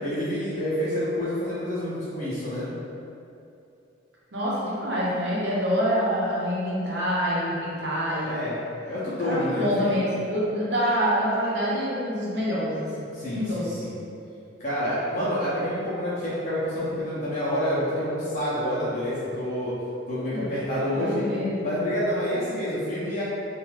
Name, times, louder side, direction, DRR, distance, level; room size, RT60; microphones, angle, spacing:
voice 1, 0.0-2.7 8.2-8.6 8.9-10.0 13.1-14.0 14.6-19.7 20.1-21.2 21.6-23.2, equal, 40° left, -10 dB, 0.5 m, -28 dB
voice 2, 4.3-8.4 9.2-13.9 20.3-20.6 20.9-21.7, equal, 65° right, -7 dB, 0.7 m, -26 dB
2.5 x 2.2 x 3.1 m, 2.6 s
head